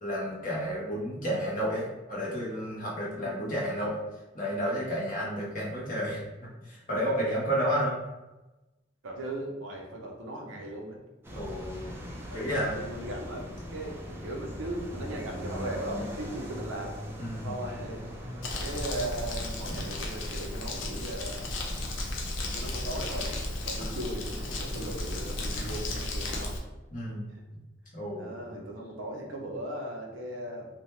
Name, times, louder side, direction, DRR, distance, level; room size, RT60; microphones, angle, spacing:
voice 1, 0.0-4.0 4.3-7.9 11.3-11.9 12.3-12.8 17.2-17.5 23.8-23.9 25.5-25.7 26.9-27.2 27.9-28.4, equal, 45° left, -6 dB, 1.0 m, -31 dB
voice 2, 3.1-3.5 9.0-11.0 12.3-16.9 17.4-18.0 18.6-21.4 22.5-23.3 23.6-26.6 27.3-27.4 28.2-30.7, right 1 dB, 85° right, 1 dB, 0.6 m, -38 dB
sound 1, 11.2-25.5, equal, 10° right, 0.3 m, -41 dB
Crumpling crinkling, 18.4-26.6, left 2 dB, 85° left, 0.5 m, -34 dB
2.8 x 2.1 x 3.1 m, 1.1 s
head